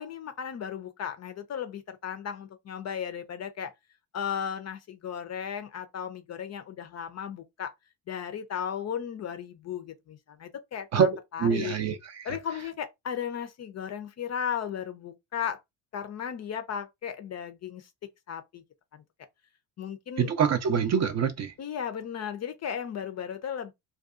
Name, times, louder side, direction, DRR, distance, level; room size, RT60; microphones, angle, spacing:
voice 1, 0.0-3.7 4.1-7.7 8.1-11.8 12.2-15.6 15.9-18.6 19.8-20.3 21.6-23.7, left 8 dB, 35° left, 0.5 m, -35 dB
voice 2, 11.4-12.4 20.2-21.5, right 7 dB, 35° right, 0.5 m, -25 dB
2.5 x 2.3 x 2.4 m
hypercardioid pair, 70°, 49 cm